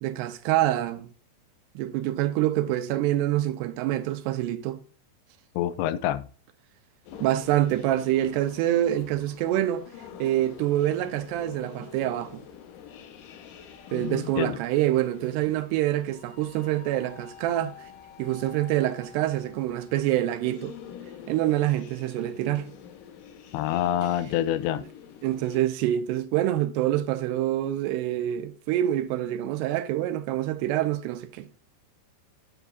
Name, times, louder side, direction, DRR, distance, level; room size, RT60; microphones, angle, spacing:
voice 1, 0.0-1.1 1.8-4.8 7.2-9.9 10.2-12.4 13.9-17.7 18.2-20.7 21.3-22.7 25.2-31.5, right 13 dB, 85° right, 2.7 m, -26 dB
voice 2, 5.6-6.2 13.9-14.6 23.5-24.8, left 12 dB, 85° left, 2.9 m, -27 dB
sound 1, 7.0-25.6, left 8 dB, 70° left, 2.2 m, -47 dB
9.8 x 8.2 x 2.6 m
omnidirectional pair, 5.0 m